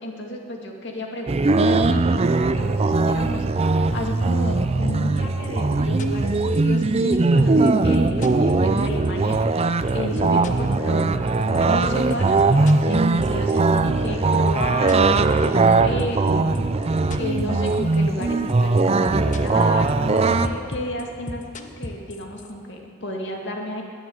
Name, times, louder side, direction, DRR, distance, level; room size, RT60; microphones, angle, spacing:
voice 1, 0.0-23.8, left 1 dB, 60° left, 1 dB, 2.1 m, -32 dB
sound 1, 1.3-20.5, right 3 dB, 30° right, 0.4 m, -20 dB
sound 2, 4.9-5.2 5.4-6.8 7.1-9.1 9.3-9.6 9.9-14.1 14.3-15.7 16.0-18.0 18.2-18.5 18.8-19.6 19.9-22.5, left 1 dB, 35° left, 0.8 m, -34 dB
21.5 x 7.3 x 7.8 m, 2.4 s
head